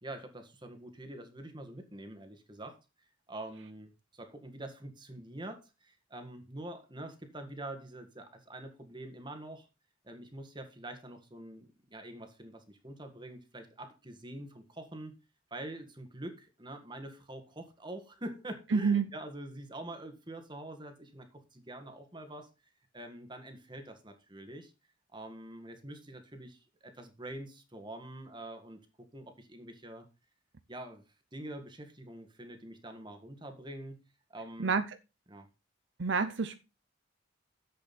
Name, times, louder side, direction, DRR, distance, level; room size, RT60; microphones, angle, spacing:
voice 1, 0.0-2.8 3.3-9.7 10.0-15.2 15.5-22.5 22.9-24.7 25.1-28.8 29.1-30.1 30.7-31.0 31.3-34.0 34.3-34.8 35.3-35.5, right 1 dB, 20° right, 1.8 m, -45 dB
voice 2, 18.7-19.1 34.6-34.8 36.0-36.6, right 5 dB, 60° right, 0.7 m, -28 dB
10.5 x 7.8 x 4.2 m
head